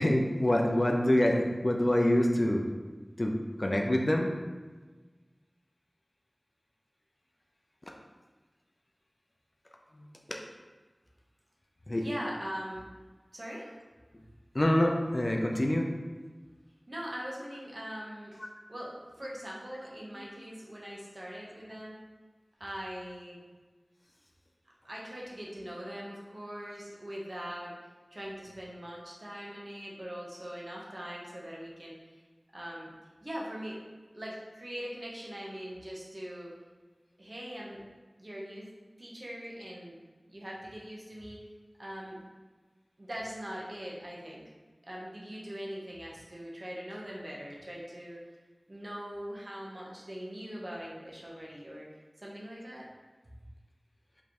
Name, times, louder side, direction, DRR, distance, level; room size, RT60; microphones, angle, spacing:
voice 1, 0.0-2.6 3.2-4.3 10.3-10.4 11.9-12.0 14.5-15.9 20.1-20.3, left 1 dB, 45° left, 1 dB, 0.5 m, -26 dB
voice 2, 11.9-12.9 13.3-13.7 16.9-22.0 22.6-23.4 24.8-27.7 28.1-32.2 32.5-32.9 33.2-33.8 34.1-36.5 37.2-37.8 38.2-38.7 39.0-40.0 40.3-41.4 41.8-42.2 43.0-44.4 44.8-48.2 48.7-51.9 52.2-52.9, equal, 55° right, -4 dB, 1.0 m, -41 dB
5.1 x 3.2 x 3.0 m, 1.3 s
wide cardioid pair, 45°, 0 cm